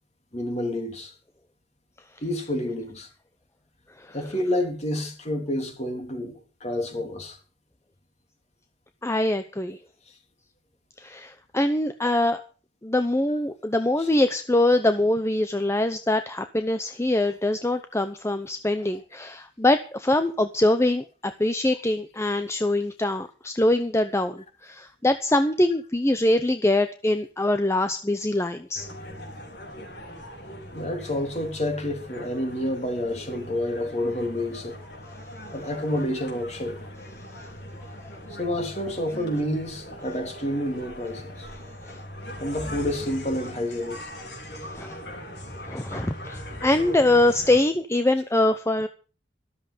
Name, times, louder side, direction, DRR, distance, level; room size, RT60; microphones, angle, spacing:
voice 1, 0.3-1.1 2.2-3.1 4.1-7.4 30.7-34.7 35.5-36.8 38.4-41.5 42.4-44.0, left 1 dB, 35° left, 3.3 m, -29 dB
voice 2, 9.0-9.8 11.0-12.4 12.8-28.9 35.1-35.2 37.3-37.5 41.9-42.0 44.7-45.0 45.7-48.9, left 1 dB, 15° left, 0.8 m, -23 dB
sound 1, 28.7-47.6, equal, 60° left, 4.7 m, -40 dB
13.5 x 13.0 x 5.1 m
head